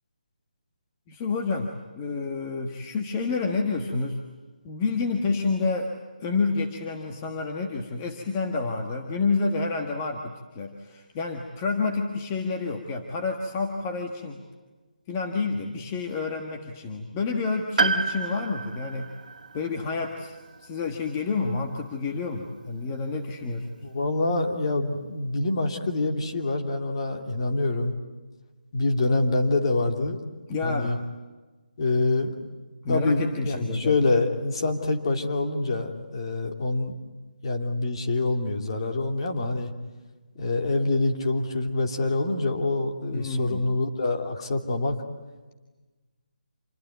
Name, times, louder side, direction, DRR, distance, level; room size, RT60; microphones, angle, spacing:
voice 1, 1.1-4.2 4.6-5.9 6.2-14.4 15.1-19.1 19.5-23.7 30.5-31.0 32.8-33.9 43.1-43.7, left 4 dB, 15° left, 2 dB, 1.4 m, -29 dB
Piano, 17.8-21.7 21.9-22.0 23.2-23.3, right 4 dB, 55° right, 1.9 m, -30 dB
voice 2, 23.8-28.0 28.7-30.2 30.6-31.0 31.8-32.5 32.9-36.9 37.4-39.7 40.4-45.0, left 2 dB, 35° left, 4 dB, 2.8 m, -26 dB
27.5 x 21.5 x 9.3 m, 1.2 s
hypercardioid pair, 170°, 5 cm